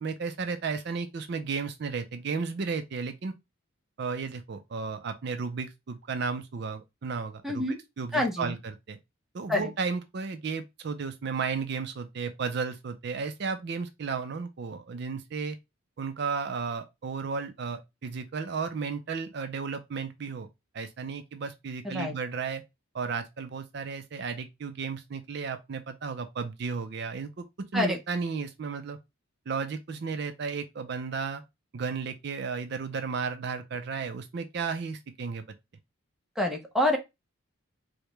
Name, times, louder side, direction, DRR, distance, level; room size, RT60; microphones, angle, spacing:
voice 1, 0.0-3.3 4.0-7.6 8.0-9.0 9.3-15.6 16.0-20.5 20.7-22.6 22.9-27.5 27.7-29.0 29.5-31.4 31.7-35.4, right 5 dB, 50° right, 0.4 m, -33 dB
voice 2, 7.4-7.8 8.1-8.5 9.5-9.7 21.8-22.1 27.7-28.0 36.4-37.0, left 1 dB, ahead, 0.6 m, -27 dB
4.6 x 2.1 x 3.2 m
head